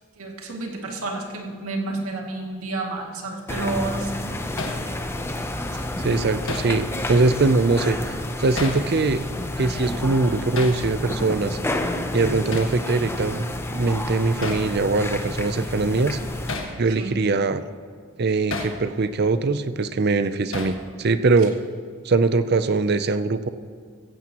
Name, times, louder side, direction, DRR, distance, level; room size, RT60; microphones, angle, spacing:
voice 1, 0.2-4.2 5.7-5.9 17.0-17.2, right 2 dB, 85° right, 0 dB, 2.3 m, -30 dB
sound 1, 3.5-16.6, left 1 dB, 10° left, 0.6 m, -30 dB
Hammer, 4.6-4.8 6.5-6.8 8.6-8.9 10.6-10.8 12.5-12.8 14.4-14.7 16.5-16.8 18.5-18.8 20.5-20.8, left 3 dB, 65° left, 1.5 m, -30 dB
voice 2, 6.0-9.3 9.6-11.6 12.1-16.2 16.8-17.6 18.2-21.6 22.0-23.5, right 3 dB, 50° right, 12 dB, 0.5 m, -22 dB
15.5 x 15.5 x 3.0 m, 2.2 s
head